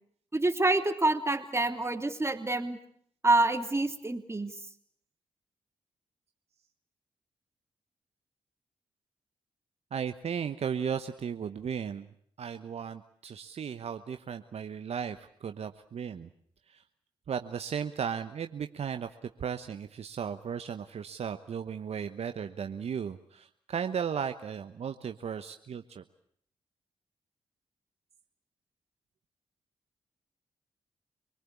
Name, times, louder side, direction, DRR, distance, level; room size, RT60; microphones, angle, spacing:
voice 1, 0.3-2.8 3.2-4.5, right 2 dB, 25° right, 7 dB, 2.9 m, -27 dB
voice 2, 9.9-12.1 12.4-16.3 16.7-16.8 17.3-26.0, right 7 dB, 65° right, 8 dB, 1.1 m, -35 dB
26.0 x 20.0 x 8.5 m, 0.63 s
supercardioid pair, 40°, 12 cm